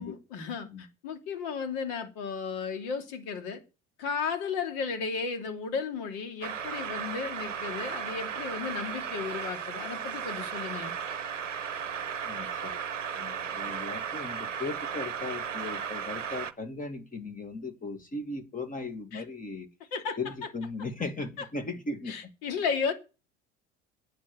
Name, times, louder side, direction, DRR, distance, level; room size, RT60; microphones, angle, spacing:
voice 1, 0.0-3.6 4.0-10.9 19.1-19.2 19.9-20.2 22.1-22.9, left 5 dB, 55° left, 2.8 m, -34 dB
sound 1, 6.4-16.5, right 7 dB, 80° right, 0.8 m, -35 dB
voice 2, 12.2-12.8 13.1-19.7 20.2-22.3, left 3 dB, 20° left, 2.4 m, -37 dB
9.8 x 6.8 x 9.0 m
figure-of-eight pair, 70°, 36 cm